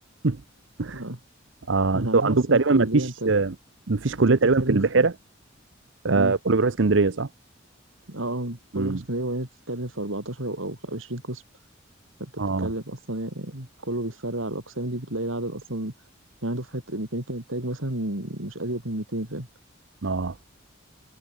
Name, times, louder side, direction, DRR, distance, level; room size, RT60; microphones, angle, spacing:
voice 1, 0.9-1.2 1.9-3.3 4.1-5.1 6.1-6.4 8.1-11.4 12.2-15.9 16.4-19.5, right 1 dB, 85° right, 4.2 m, -31 dB
voice 2, 1.7-3.5 3.9-5.1 6.0-7.3 8.7-9.0 12.4-12.7 20.0-20.3, right 3 dB, 70° right, 0.8 m, -22 dB
head